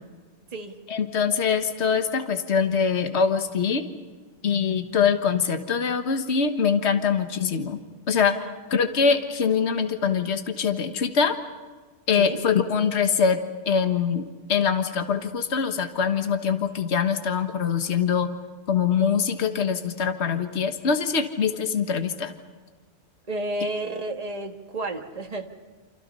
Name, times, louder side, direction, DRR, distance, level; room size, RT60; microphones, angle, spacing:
voice 1, 0.9-3.8 4.4-7.8 8.1-8.4 8.7-11.4 12.1-13.4 13.7-14.2 14.5-18.3 18.7-22.3, left 6 dB, 55° left, 7 dB, 1.7 m, -23 dB
voice 2, 23.3-25.5, right 2 dB, 30° right, 4 dB, 1.8 m, -32 dB
29.0 x 27.0 x 5.5 m, 1.4 s
omnidirectional pair, 1.4 m